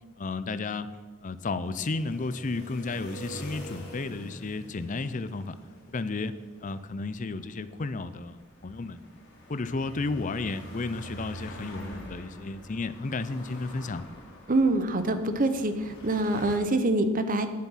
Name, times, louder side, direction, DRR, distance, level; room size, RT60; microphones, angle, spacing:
voice 1, 0.2-5.6 5.9-9.0 9.5-14.0, left 3 dB, 35° left, 13 dB, 0.5 m, -33 dB
sound 1, 1.6-16.6, equal, 55° left, 2.6 m, -46 dB
voice 2, 14.5-17.5, right 2 dB, 40° right, 9 dB, 0.8 m, -25 dB
9.8 x 7.3 x 5.7 m, 1.5 s
head